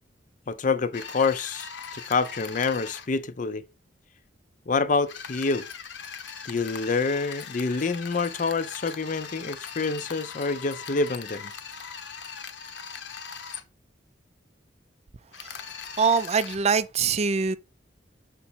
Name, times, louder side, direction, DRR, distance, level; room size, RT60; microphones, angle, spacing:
voice 1, 0.5-3.6 4.7-5.6 6.5-11.5, left 4 dB, 45° left, 0.5 m, -27 dB
sound 1, 0.9-3.1 5.1-13.6 15.3-16.6, left 6 dB, 70° left, 0.8 m, -40 dB
voice 2, 16.0-17.6, right 5 dB, 35° right, 0.4 m, -23 dB
5.9 x 4.2 x 4.4 m
head